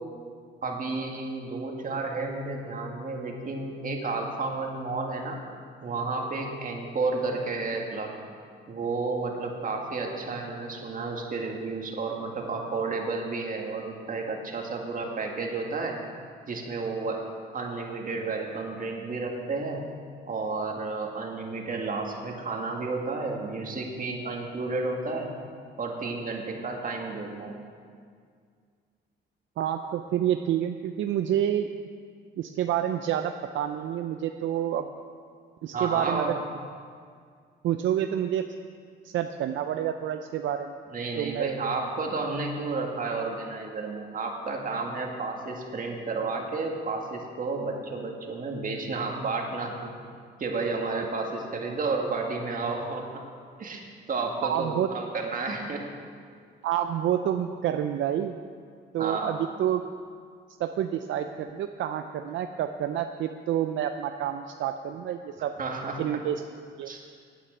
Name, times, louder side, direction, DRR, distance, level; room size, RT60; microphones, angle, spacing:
voice 1, 0.6-5.4 5.8-8.1 8.7-16.0 16.5-17.2 17.5-19.8 20.3-25.3 25.8-27.6 35.7-36.4 40.9-49.9 50.4-53.2 53.6-53.8 54.1-55.9 59.0-59.4 65.6-66.0 66.8-67.0, right 3 dB, 45° right, 1 dB, 2.1 m, -31 dB
voice 2, 29.6-31.7 32.4-34.9 35.6-36.3 37.6-38.4 39.0-40.7 41.2-41.5 54.4-54.9 56.6-58.4 58.9-59.8 60.6-65.5 66.0-66.4 66.8-66.9, right 10 dB, 75° right, 7 dB, 0.5 m, -28 dB
9.5 x 9.4 x 7.6 m, 2.1 s
cardioid pair, 90°, 20 cm